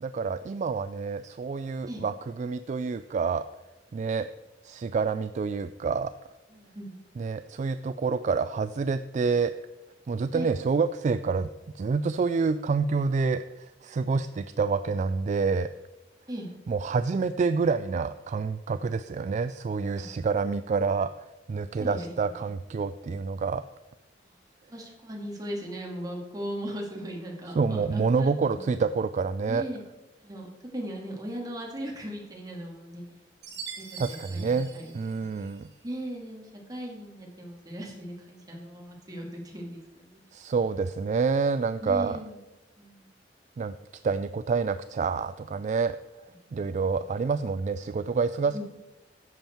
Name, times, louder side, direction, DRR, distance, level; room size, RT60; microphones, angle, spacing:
voice 1, 0.0-3.5 3.9-4.3 4.6-6.1 7.2-9.5 10.1-11.5 11.7-15.7 16.7-21.1 21.5-23.6 27.6-29.6 34.0-35.7 40.3-42.2 43.6-43.8 44.0-46.0 46.5-48.6, right 4 dB, 45° right, 12 dB, 0.3 m, -27 dB
voice 2, 6.5-6.9 10.3-10.5 16.3-16.5 21.8-22.1 22.4-22.5 24.7-28.7 29.5-29.8 30.2-30.5 30.7-33.1 33.8-35.3 35.8-40.2 41.8-42.4 42.8-43.1 48.5-48.6, right 1 dB, 20° right, -1 dB, 2.2 m, -38 dB
Chime, 33.4-35.7, right 6 dB, 90° right, 2.7 m, -43 dB
10.5 x 7.3 x 4.5 m, 1.1 s
head